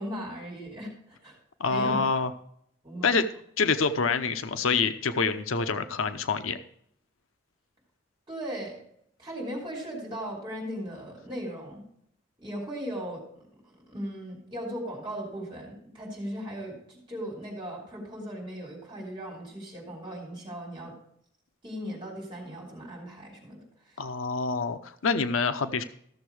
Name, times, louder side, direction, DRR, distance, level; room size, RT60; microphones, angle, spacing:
voice 1, 0.0-1.3 1.7-2.0 2.8-3.1 8.3-8.8 9.2-11.8 12.4-20.9 21.6-24.0, equal, 25° right, -2 dB, 3.6 m, -38 dB
voice 2, 1.6-2.3 3.0-3.2 3.6-6.6 24.0-25.8, left 4 dB, 85° left, 10 dB, 0.7 m, -26 dB
14.0 x 6.9 x 4.8 m, 0.70 s
head